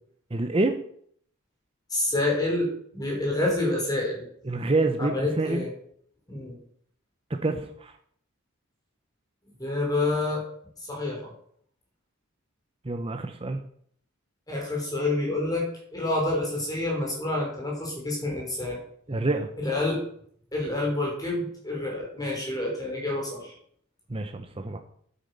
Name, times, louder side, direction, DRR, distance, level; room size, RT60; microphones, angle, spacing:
voice 1, 0.3-0.8 4.5-5.6 7.4-7.9 12.8-13.6 19.1-19.5 24.1-24.8, right 2 dB, 25° right, 6 dB, 0.7 m, -27 dB
voice 2, 1.9-4.3 5.0-5.7 6.3-6.6 9.6-10.4 10.9-11.3 14.5-15.7 15.9-18.8 19.6-20.0 20.5-23.6, left 2 dB, 20° left, -2 dB, 3.7 m, -28 dB
9.7 x 8.4 x 5.4 m, 0.63 s
head